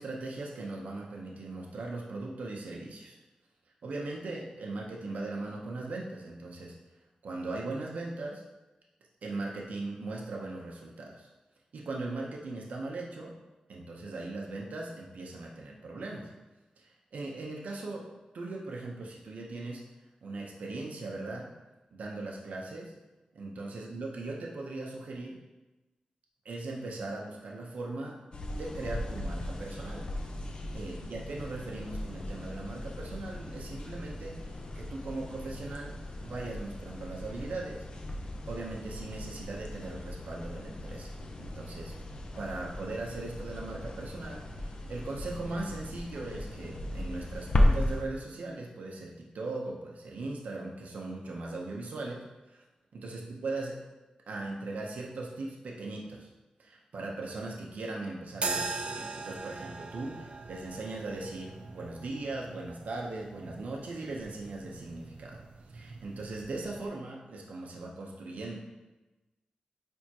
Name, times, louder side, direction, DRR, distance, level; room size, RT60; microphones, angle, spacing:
voice 1, 0.0-3.2 3.8-6.7 7.2-8.4 9.2-11.3 11.7-13.3 13.7-16.3 16.8-18.1 18.3-19.8 20.2-21.5 21.9-22.9 23.3-25.4 26.4-28.2 28.6-30.0 30.7-35.9 36.2-37.8 38.5-41.9 42.4-52.6 52.9-53.8 54.3-56.3 56.6-65.4 65.7-68.6, right 2 dB, 80° right, -1 dB, 0.9 m, -39 dB
sound 1, 28.3-48.0, left 1 dB, 40° left, 0.6 m, -35 dB
sound 2, 58.3-66.9, right 4 dB, 55° right, 0.5 m, -41 dB
9.1 x 3.6 x 2.9 m, 1.1 s
wide cardioid pair, 150°, 2 cm